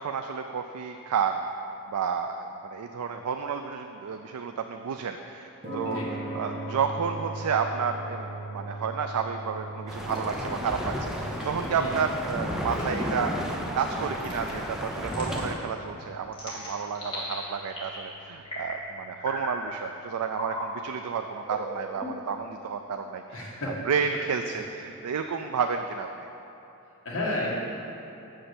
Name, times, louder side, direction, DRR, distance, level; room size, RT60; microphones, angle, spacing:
voice 1, 0.0-1.4 1.9-6.0 6.3-26.1, right 6 dB, 80° right, 6 dB, 0.4 m, -31 dB
sound 1, 5.6-22.1, right 1 dB, 25° right, 1.6 m, -42 dB
sound 2, 9.9-15.6, equal, ahead, 0.7 m, -33 dB
sound 3, 10.1-10.4 11.3-11.6 12.7-13.0 14.2-14.5 15.1-15.4 16.3-17.3 17.7-18.1 18.4-18.8 19.2-19.6 20.3-20.6 21.4-22.3, left 1 dB, 25° left, 2.4 m, -37 dB
voice 2, 23.3-23.7 27.0-27.5, left 2 dB, 65° left, -4 dB, 1.9 m, -31 dB
6.7 x 6.5 x 7.7 m, 2.9 s
head